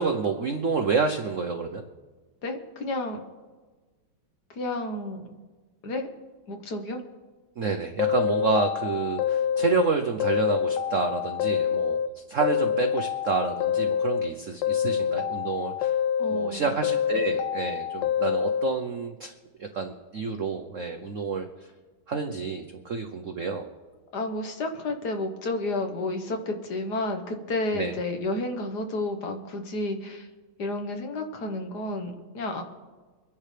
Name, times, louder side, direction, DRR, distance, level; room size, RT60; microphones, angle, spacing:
voice 1, 0.0-1.8 7.6-15.9 16.3-19.3 19.6-21.5 22.1-23.7 27.7-27.9, right 4 dB, 65° right, 5 dB, 0.8 m, -29 dB
voice 2, 2.4-3.2 4.5-5.3 5.8-6.1 6.5-7.0 16.2-16.8 24.1-30.3 30.6-32.6, left 2 dB, 55° left, 4 dB, 1.6 m, -31 dB
sound 1, 8.0-9.9 10.2-12.1 12.4-14.3 14.6-16.5 16.8-18.7, left 8 dB, 70° left, 1.1 m, -26 dB
25.0 x 10.5 x 3.3 m, 1.3 s
omnidirectional pair, 2.3 m